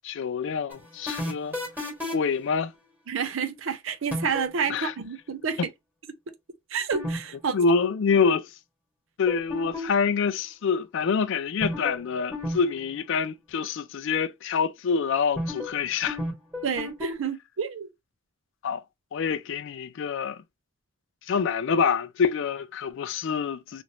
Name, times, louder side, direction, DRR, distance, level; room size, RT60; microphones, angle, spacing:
voice 1, 0.0-1.6 2.1-2.7 4.7-4.9 7.5-8.5 9.2-16.2 18.6-18.8 19.1-20.4 21.3-23.8, left 5 dB, 65° left, 0.4 m, -26 dB
sound 1, 0.7-2.4 4.1-4.5 6.9-7.2 7.4-7.5 9.3-10.1 11.6-12.0 12.3-12.6 12.8-12.9 15.4-15.8 16.1-17.1, left 1 dB, 10° right, 1.8 m, -31 dB
voice 2, 3.1-5.6 6.7-7.5 16.6-17.9, right 6 dB, 65° right, 0.5 m, -29 dB
3.0 x 2.5 x 2.9 m
head